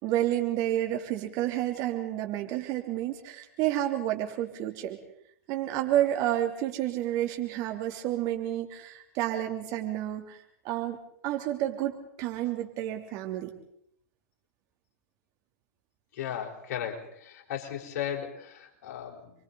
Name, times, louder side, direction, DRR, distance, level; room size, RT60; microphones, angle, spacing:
voice 1, 0.0-5.0 5.5-11.0 11.2-13.5, right 13 dB, 45° right, 3 dB, 3.4 m, -30 dB
voice 2, 16.1-19.3, left 9 dB, 55° left, 1 dB, 4.7 m, -36 dB
28.5 x 23.5 x 4.2 m, 0.71 s
hypercardioid pair, 105°, 9 cm